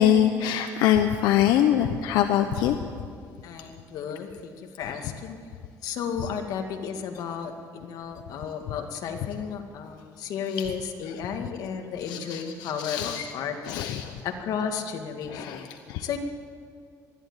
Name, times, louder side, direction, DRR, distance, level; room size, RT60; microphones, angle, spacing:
voice 1, 0.0-2.8 12.1-13.3 13.7-14.1 15.3-16.0, left 10 dB, 85° left, 7 dB, 1.0 m, -24 dB
voice 2, 3.4-5.4 5.8-13.8 14.2-15.7 16.0-16.2, left 7 dB, 65° left, 4 dB, 2.2 m, -33 dB
20.5 x 13.0 x 9.9 m, 2.2 s
cardioid pair, 140°, 7 cm